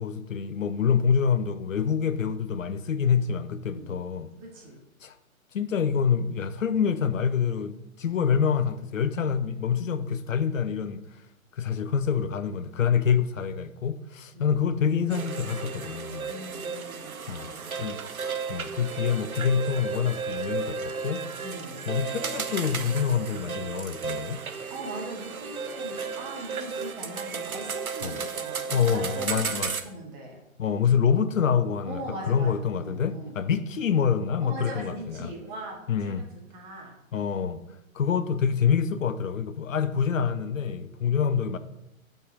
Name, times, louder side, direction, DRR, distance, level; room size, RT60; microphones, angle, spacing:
voice 1, 0.0-4.3 5.0-5.2 5.5-11.2 11.5-16.3 17.3-18.0 18.5-21.2 21.9-24.4 28.0-28.2 28.7-29.7 30.6-35.3 35.9-36.2 37.1-37.6 37.9-41.6, left 7 dB, 65° left, 0.6 m, -26 dB
voice 2, 3.7-4.1 4.4-4.8 14.3-14.5 16.2-17.8 21.4-21.9 24.7-30.4 31.8-33.3 34.4-36.2 36.5-36.9, right 1 dB, 25° right, 2.0 m, -40 dB
sound 1, 15.1-29.8, right 5 dB, 80° right, 0.9 m, -34 dB
6.1 x 5.4 x 5.3 m
figure-of-eight pair, 125°, 42 cm